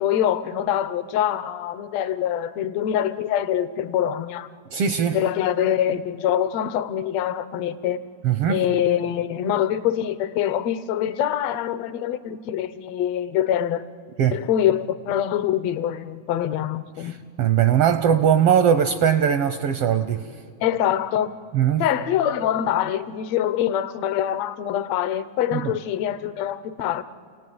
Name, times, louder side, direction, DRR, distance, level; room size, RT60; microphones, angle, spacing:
voice 1, 0.0-4.5 5.1-8.0 8.5-13.9 14.3-17.1 20.6-21.4 21.8-27.0, left 10 dB, 70° left, 13 dB, 1.9 m, -24 dB
voice 2, 4.7-5.2 8.2-8.6 14.2-14.4 17.0-20.3 21.5-21.9 25.5-25.7, right 8 dB, 75° right, 10 dB, 1.4 m, -20 dB
29.5 x 18.0 x 9.4 m, 2.3 s
omnidirectional pair, 3.4 m